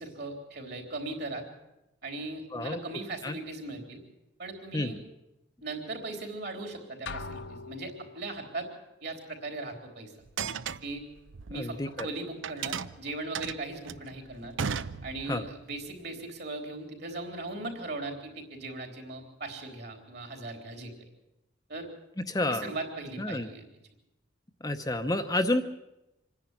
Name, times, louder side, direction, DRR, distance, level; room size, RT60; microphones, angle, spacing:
voice 1, 0.0-1.4 2.0-4.0 4.4-5.0 5.6-8.7 9.0-10.1 10.8-11.0 11.5-14.5 15.0-21.1 21.7-21.9 22.5-23.6, right 2 dB, 55° right, 4 dB, 3.9 m, -38 dB
sound 1, 7.1-8.5, left 4 dB, 65° left, 1.1 m, -41 dB
sound 2, 10.2-12.1 12.4-15.5, right 6 dB, 75° right, 0.6 m, -35 dB
voice 2, 11.5-12.1 15.3-15.5 22.3-22.7 23.2-23.5 24.6-25.6, left 1 dB, 20° left, 6 dB, 0.8 m, -30 dB
26.0 x 10.5 x 9.8 m, 0.93 s
head